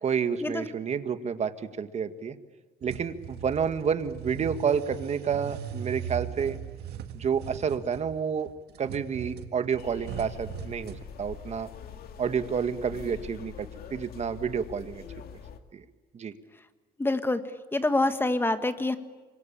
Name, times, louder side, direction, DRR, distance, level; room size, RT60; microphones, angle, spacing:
voice 1, 0.0-2.4 2.8-6.6 7.1-8.5 8.8-11.7 12.2-15.0 15.7-15.8 16.1-16.3, right 7 dB, 40° right, 10 dB, 1.9 m, -29 dB
sound 1, 2.8-11.1, right 9 dB, 70° right, 1.9 m, -39 dB
sound 2, 9.8-15.6, left 8 dB, 65° left, 2.3 m, -44 dB
voice 2, 17.0-17.4 17.7-19.0, left 2 dB, 15° left, 10 dB, 1.7 m, -26 dB
26.0 x 23.0 x 8.7 m, 1.3 s
cardioid pair, 110°, 17 cm